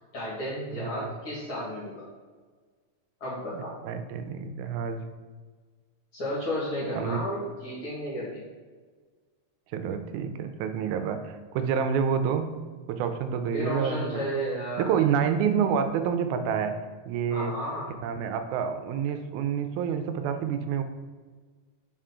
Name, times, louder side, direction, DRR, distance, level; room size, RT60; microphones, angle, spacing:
voice 1, 0.1-2.1 3.2-3.8 6.1-8.4 13.5-14.9 17.3-17.9, equal, 50° left, -7 dB, 2.4 m, -33 dB
voice 2, 0.8-1.1 3.5-5.1 7.0-7.2 9.7-12.5 12.9-14.2 14.8-16.8 17.1-17.5 18.0-20.8, right 7 dB, 85° right, 8 dB, 2.0 m, -28 dB
5.6 x 4.8 x 3.7 m, 1.4 s
omnidirectional pair, 3.4 m